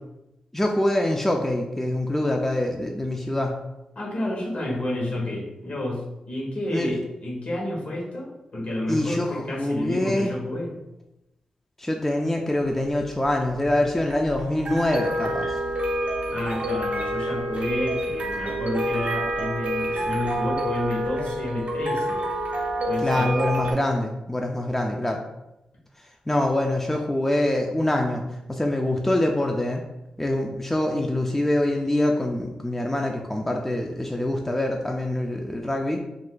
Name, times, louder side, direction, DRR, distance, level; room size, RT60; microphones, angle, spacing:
voice 1, 0.5-3.5 6.7-7.0 8.9-10.3 11.8-15.6 23.0-25.2 26.3-29.8 30.2-36.0, left 1 dB, 10° left, 1 dB, 0.4 m, -25 dB
voice 2, 3.9-10.7 16.3-22.2 22.9-23.3, left 1 dB, 60° left, -2 dB, 1.0 m, -30 dB
sound 1, 12.7-23.7, right 1 dB, 60° right, 0.6 m, -28 dB
2.5 x 2.2 x 3.6 m, 0.93 s
cardioid pair, 50°, 2 cm